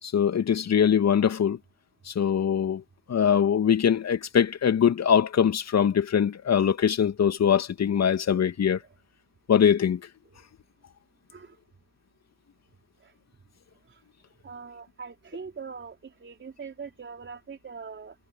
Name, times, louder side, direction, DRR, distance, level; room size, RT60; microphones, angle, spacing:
voice 1, 0.0-1.6 2.1-2.8 3.1-8.8 9.5-10.0, left 8 dB, 35° left, 2.7 m, -22 dB
voice 2, 14.4-15.9 16.2-18.1, right 5 dB, 25° right, 4.5 m, -41 dB
hypercardioid pair, 65°, 45 cm